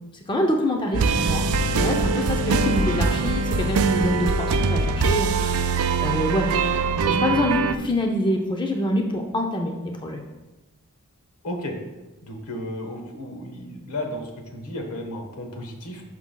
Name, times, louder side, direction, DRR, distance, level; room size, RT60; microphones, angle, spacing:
voice 1, 0.3-1.4 1.8-10.2, left 1 dB, 20° left, 2 dB, 0.6 m, -26 dB
sound 1, 0.9-7.8, right 4 dB, 70° right, 0.4 m, -22 dB
voice 2, 11.4-11.8 12.2-16.0, left 1 dB, 85° left, 3 dB, 1.2 m, -33 dB
11.0 x 6.0 x 2.3 m, 1.1 s
head